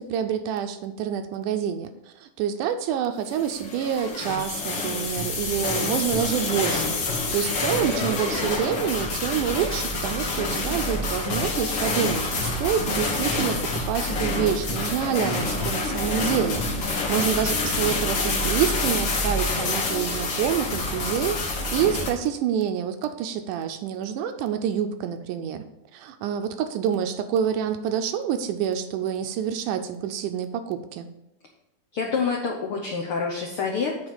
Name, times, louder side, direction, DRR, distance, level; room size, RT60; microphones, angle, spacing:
voice 1, 0.0-13.6 13.9-25.6 25.9-31.1, right 9 dB, 80° right, 8 dB, 2.0 m, -27 dB
sound 1, 3.3-22.1, left 2 dB, 50° left, 1.5 m, -27 dB
voice 2, 31.9-34.0, left 5 dB, 90° left, 0 dB, 1.2 m, -27 dB
7.9 x 4.6 x 7.2 m, 0.88 s
omnidirectional pair, 3.9 m